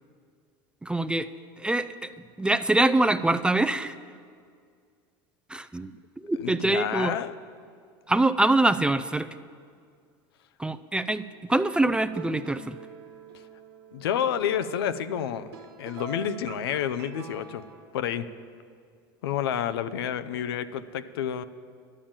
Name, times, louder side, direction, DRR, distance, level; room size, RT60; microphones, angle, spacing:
voice 1, 0.8-1.3 1.6-2.1 2.4-4.0 5.5-5.9 6.2-7.1 8.1-9.3 10.6-12.8, right 2 dB, 5° right, 12 dB, 0.4 m, -24 dB
voice 2, 6.4-7.4 13.9-15.5 15.8-17.6 17.9-18.3 19.2-21.4, left 9 dB, 80° left, 12 dB, 0.6 m, -29 dB
sound 1, 12.2-17.9, right 5 dB, 80° right, 1.3 m, -46 dB
11.0 x 7.2 x 8.8 m, 2.2 s
hypercardioid pair, 95°, 13 cm